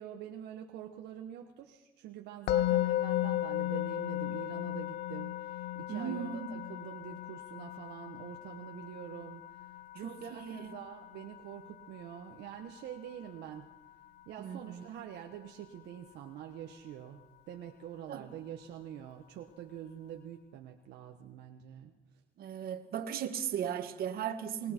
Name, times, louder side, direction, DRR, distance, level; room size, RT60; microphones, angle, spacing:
voice 1, 0.0-13.7 14.3-21.9 24.6-24.7, right 10 dB, 80° right, 2 dB, 1.4 m, -46 dB
Musical instrument, 2.5-13.6, left 14 dB, 85° left, 0.7 m, -36 dB
voice 2, 5.9-6.6 10.0-10.7 14.4-14.8 18.1-18.2 22.4-24.7, right 8 dB, 65° right, 7 dB, 1.9 m, -37 dB
29.5 x 19.5 x 4.6 m, 0.97 s
cardioid pair, 110°, 17 cm